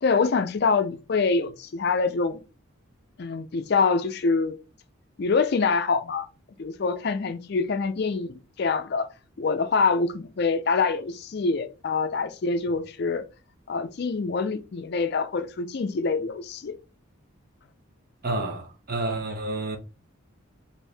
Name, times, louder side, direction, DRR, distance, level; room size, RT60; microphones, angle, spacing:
voice 1, 0.0-2.4 3.2-4.6 5.2-6.3 6.6-9.1 9.4-13.2 13.7-16.7, left 4 dB, 50° left, 0.4 m, -25 dB
voice 2, 18.2-19.8, right 2 dB, 45° right, 0.7 m, -29 dB
4.4 x 2.6 x 3.3 m
head